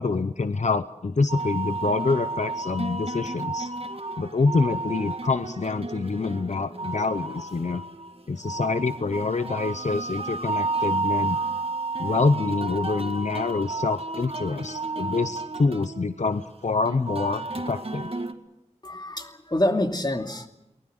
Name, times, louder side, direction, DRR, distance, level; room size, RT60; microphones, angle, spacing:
voice 1, 0.0-3.7 4.2-7.8 8.3-11.4 12.0-18.1, left 4 dB, 80° left, 11 dB, 0.8 m, -26 dB
sound 1, 1.3-18.3, right 3 dB, 50° right, 2.0 m, -32 dB
voice 2, 18.8-20.5, left 1 dB, 35° left, 4 dB, 2.6 m, -26 dB
23.0 x 19.5 x 7.9 m, 0.88 s
wide cardioid pair, 50°, 12 cm